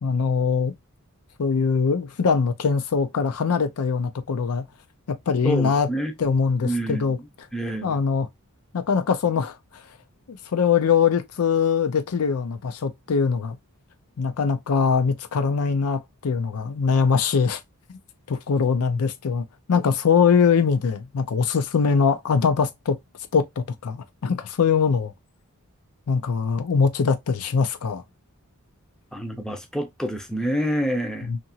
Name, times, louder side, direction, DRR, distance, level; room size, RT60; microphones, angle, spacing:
voice 1, 0.0-0.7 1.4-4.6 5.1-5.9 6.2-7.2 7.8-8.3 8.7-9.6 10.3-13.6 14.2-17.6 18.3-23.0 23.3-25.1 26.1-28.0 31.2-31.4, left 5 dB, 80° left, 0.5 m, -22 dB
voice 2, 5.4-6.1 6.6-7.2 7.5-8.0 29.1-31.3, equal, 5° left, 0.5 m, -27 dB
2.8 x 2.6 x 2.6 m
head